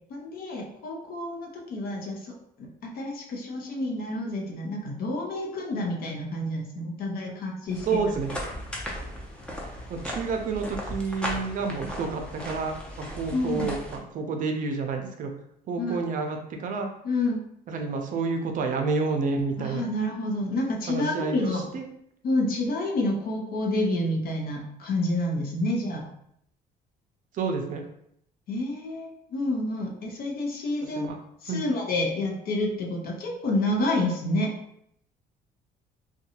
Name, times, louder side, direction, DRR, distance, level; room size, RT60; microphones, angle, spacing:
voice 1, 0.1-8.0 13.3-13.7 15.8-16.0 17.0-17.4 19.6-21.7 22.2-26.1 28.5-31.1 31.4-34.5, left 1 dB, 60° left, 0 dB, 0.7 m, -29 dB
sound 1, 7.7-14.0, equal, 5° left, 0.6 m, -36 dB
voice 2, 7.9-8.3 9.9-15.3 15.7-16.9 17.7-19.8 20.9-21.9 27.3-27.8 30.8-31.2 31.5-31.6, right 4 dB, 50° right, 4 dB, 0.5 m, -29 dB
2.7 x 2.2 x 2.8 m, 0.72 s
cardioid pair, 110°, 17 cm